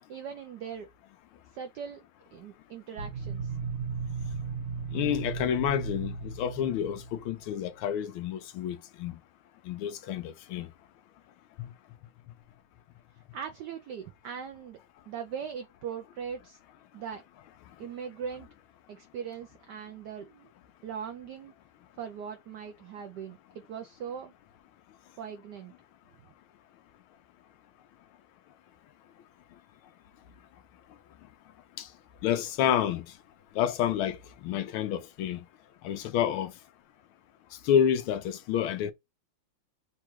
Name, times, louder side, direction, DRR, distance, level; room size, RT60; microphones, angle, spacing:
voice 1, 0.1-0.9 1.5-2.0 2.3-3.6 13.3-14.8 15.1-16.6 16.9-17.2 17.8-18.5 18.9-20.5 20.8-21.5 22.0-23.4 23.7-24.3 25.2-25.7, right 7 dB, 85° right, 0.9 m, -40 dB
sound 1, 3.0-7.6, right 5 dB, 60° right, 1.7 m, -36 dB
voice 2, 4.9-9.2 9.6-10.7 11.6-11.7 31.8-31.9 32.2-33.1 33.5-35.4 35.8-36.5 37.6-38.9, left 9 dB, 75° left, 1.4 m, -29 dB
4.2 x 2.4 x 4.5 m
omnidirectional pair, 2.4 m